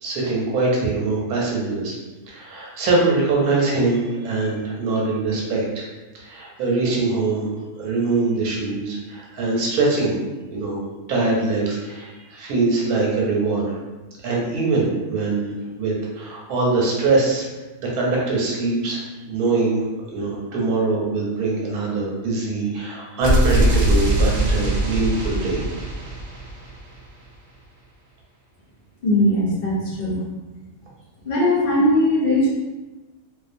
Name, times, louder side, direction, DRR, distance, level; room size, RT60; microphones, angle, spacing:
voice 1, 0.0-2.0 2.3-5.9 6.2-7.5 7.8-10.2 10.5-10.8 11.1-13.8 14.2-17.5 17.8-25.6, right 3 dB, 85° right, -3 dB, 1.2 m, -23 dB
sound 1, 23.2-27.1, right 1 dB, 60° right, 0.9 m, -21 dB
voice 2, 29.0-30.2 31.2-32.5, left 1 dB, 55° left, -7 dB, 0.7 m, -19 dB
2.4 x 2.3 x 2.5 m, 1.2 s
omnidirectional pair, 1.6 m